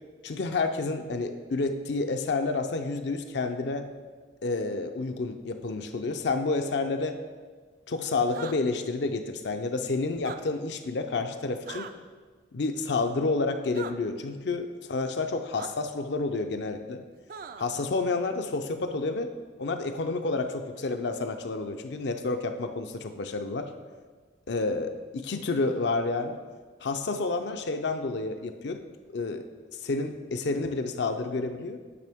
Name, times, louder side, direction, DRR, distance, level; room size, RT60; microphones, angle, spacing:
voice 1, 0.2-3.9 4.4-7.2 7.9-11.9 12.5-17.0 17.6-19.3 19.6-23.7 24.5-26.4 26.8-28.8 29.1-29.4 29.8-31.8, left 3 dB, 65° left, 7 dB, 0.5 m, -29 dB
sound 1, 8.3-8.6 10.1-10.4 11.7-11.9 13.7-13.9 15.5-15.7 17.3-17.7, right 6 dB, 50° right, 0.3 m, -39 dB
9.4 x 5.4 x 3.5 m, 1.5 s
head